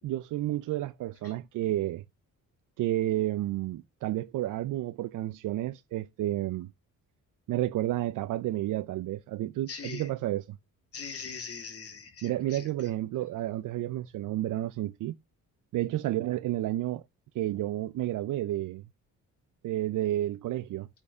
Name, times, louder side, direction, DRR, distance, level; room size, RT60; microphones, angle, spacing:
voice 1, 0.0-2.0 2.8-6.7 7.5-10.6 12.2-15.2 15.7-17.0 17.3-18.8 19.6-20.9, right 14 dB, 70° right, 0.5 m, -31 dB
voice 2, 9.7-10.1 10.9-12.7, left 5 dB, 50° left, 3.0 m, -41 dB
8.6 x 4.6 x 6.9 m
cardioid pair, 125°, 32 cm